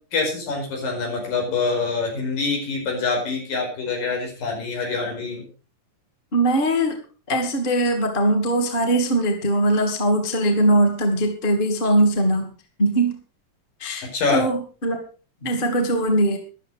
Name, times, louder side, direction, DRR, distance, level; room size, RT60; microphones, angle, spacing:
voice 1, 0.1-5.5 14.0-14.5, left 4 dB, 75° left, 1 dB, 6.7 m, -25 dB
voice 2, 6.3-7.0 7.3-12.5 12.8-13.1 13.8-15.0 15.4-16.4, right 1 dB, 15° left, 4 dB, 2.1 m, -21 dB
13.5 x 11.5 x 4.8 m, 0.36 s
omnidirectional pair, 4.0 m